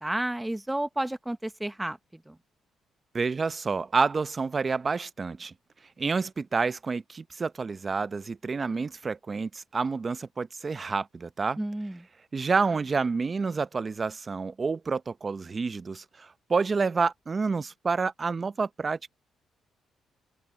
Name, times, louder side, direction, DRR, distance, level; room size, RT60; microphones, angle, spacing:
voice 1, 0.0-2.0 2.3-2.4 11.6-12.0, right 1 dB, 10° right, 1.2 m, -31 dB
voice 2, 3.1-5.5 6.0-11.6 12.3-19.1, right 4 dB, 35° right, 0.8 m, -29 dB
cardioid pair, 90°, 0 cm